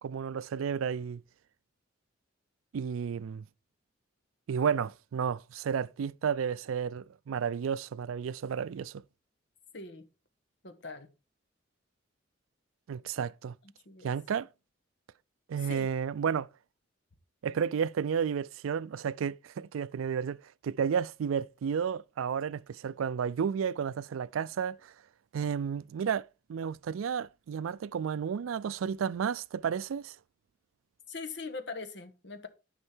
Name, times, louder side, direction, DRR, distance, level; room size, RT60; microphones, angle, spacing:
voice 1, 0.0-1.2 2.7-3.4 4.5-9.0 12.9-13.6 14.0-14.5 15.5-16.5 17.4-20.4 20.6-24.9 25.3-30.2, right 7 dB, 90° right, 0.4 m, -32 dB
voice 2, 10.6-11.1 13.9-14.1 15.7-15.9 31.1-32.5, left 4 dB, 60° left, 1.1 m, -41 dB
9.8 x 5.5 x 4.4 m
head